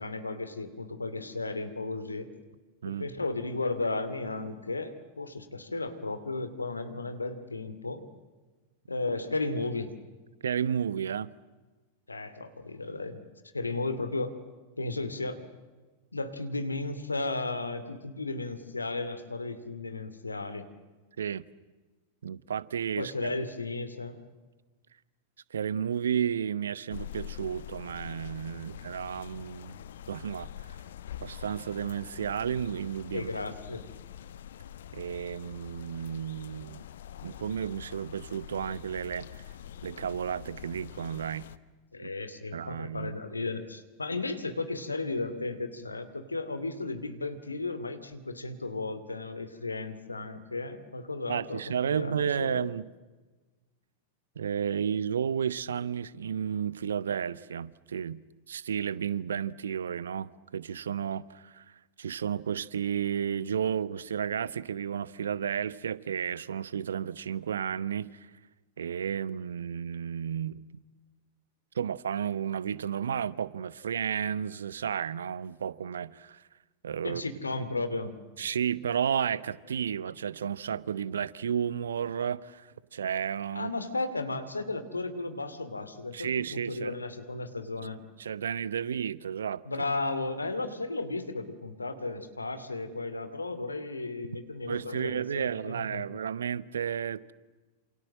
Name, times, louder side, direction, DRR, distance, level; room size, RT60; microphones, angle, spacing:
voice 1, 0.0-2.3 2.8-8.0 8.9-9.9 12.1-13.2 13.5-14.3 14.8-15.4 16.1-20.7 23.0-24.2 33.1-33.8 41.9-52.7 77.0-78.1 83.5-88.0 89.7-96.1, left 3 dB, 80° left, 2.6 m, -34 dB
voice 2, 10.4-11.3 21.2-21.4 22.2-23.1 25.5-29.8 30.1-30.5 31.2-33.3 34.9-36.8 37.2-39.5 39.8-41.5 42.0-42.1 42.5-43.1 51.3-52.8 54.4-58.2 58.5-68.3 68.8-70.7 71.7-76.4 76.8-77.2 78.4-83.7 86.1-87.0 88.2-89.6 94.7-97.3, right 8 dB, 65° right, 0.9 m, -32 dB
sound 1, 26.9-41.6, left 11 dB, 60° left, 1.1 m, -45 dB
28.5 x 27.5 x 7.6 m
figure-of-eight pair, 90°, 0 cm